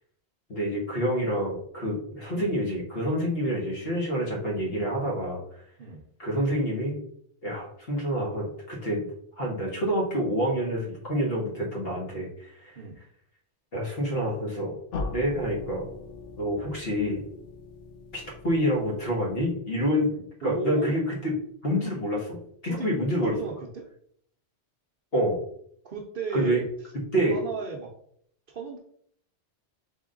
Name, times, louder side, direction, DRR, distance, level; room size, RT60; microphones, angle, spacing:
voice 1, 0.5-5.4 6.2-7.0 7.4-9.1 9.4-12.8 13.7-14.8 15.1-15.9 16.4-17.2 18.1-20.1 20.4-21.3 21.6-23.4 25.1-25.4 26.3-26.6 27.1-27.4, equal, 55° left, -3 dB, 1.6 m, -27 dB
sound 1, 14.9-19.7, left 3 dB, 85° left, 1.0 m, -40 dB
voice 2, 20.1-21.0 22.7-23.0 23.3-23.8 25.8-26.7 27.3-27.9 28.5-28.8, right 4 dB, 55° right, 1 dB, 0.8 m, -35 dB
3.8 x 3.5 x 3.8 m, 0.65 s
omnidirectional pair, 1.2 m